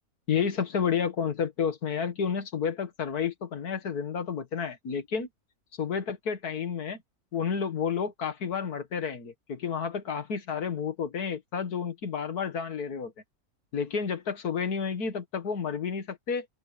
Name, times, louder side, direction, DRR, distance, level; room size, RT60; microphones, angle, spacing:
voice 1, 0.3-5.3 5.8-7.0 7.3-13.1 13.7-16.5, left 6 dB, 85° left, 2.2 m, -30 dB
open air
omnidirectional pair, 1.6 m